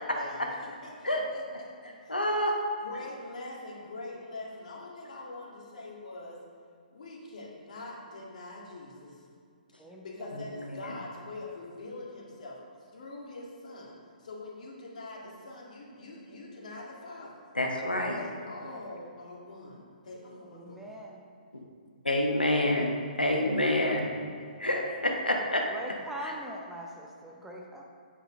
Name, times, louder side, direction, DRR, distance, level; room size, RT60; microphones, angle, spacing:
voice 1, 0.0-2.2 2.8-6.4 6.9-9.3 10.0-17.4 17.8-20.9, left 2 dB, 55° left, -3 dB, 2.0 m, -44 dB
voice 2, 2.1-2.5 17.5-18.2 22.0-22.9 23.2-24.2 24.6-25.6 26.2-26.3, left 1 dB, 85° left, 1 dB, 1.1 m, -27 dB
voice 3, 9.8-10.3 20.4-21.2 25.7-27.8, equal, 5° right, 0 dB, 0.7 m, -42 dB
8.7 x 5.5 x 5.3 m, 2.3 s
figure-of-eight pair, 125°, 5 cm